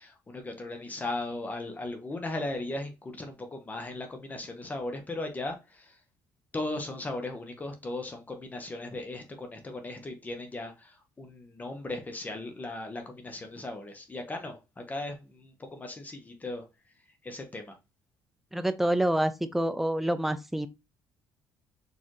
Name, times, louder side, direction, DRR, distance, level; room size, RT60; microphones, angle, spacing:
voice 1, 0.0-6.0 6.5-16.6 17.2-17.8, left 2 dB, 20° left, 1.0 m, -37 dB
voice 2, 18.5-20.7, right 1 dB, 5° right, 0.5 m, -27 dB
4.4 x 3.4 x 3.1 m
cardioid pair, 110°, 8 cm